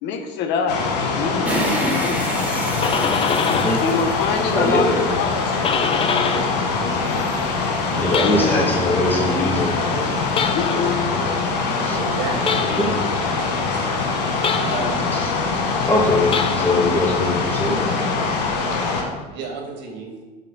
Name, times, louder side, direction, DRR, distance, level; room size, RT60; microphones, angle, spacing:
voice 1, 0.0-2.2 3.8-5.8 8.2-8.9 10.5-11.0, left 5 dB, 60° left, 6 dB, 0.9 m, -25 dB
sound 1, 0.7-19.0, left 4 dB, 80° left, 1.2 m, -23 dB
sound 2, 1.5-4.9, right 1 dB, 5° right, 1.2 m, -28 dB
sound 3, 2.5-3.9 4.2-6.6 7.0-8.8 10.3-11.0 12.4-13.1 14.4-15.1 16.2-17.0, left 6 dB, 25° left, 0.5 m, -25 dB
voice 2, 4.5-5.0 7.9-9.9 11.8-12.0 12.8-13.0 15.1-15.3 15.9-17.9, left 1 dB, 10° left, -4 dB, 2.0 m, -22 dB
voice 3, 9.7-10.1 10.7-12.6 13.4-14.0 14.6-15.2 19.3-20.2, right 4 dB, 55° right, 1 dB, 1.7 m, -33 dB
7.4 x 3.9 x 4.0 m, 1.3 s
hypercardioid pair, 85°, 21 cm